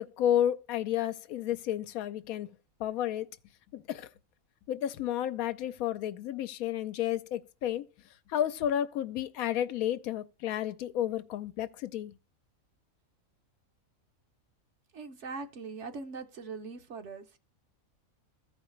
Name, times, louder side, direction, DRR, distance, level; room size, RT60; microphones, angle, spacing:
voice 1, 0.0-2.5 2.8-3.3 3.7-4.1 4.7-7.9 8.3-12.2, left 11 dB, 90° left, 1.1 m, -31 dB
voice 2, 14.9-17.4, right 4 dB, 60° right, 1.0 m, -41 dB
14.5 x 4.8 x 3.1 m
omnidirectional pair, 1.4 m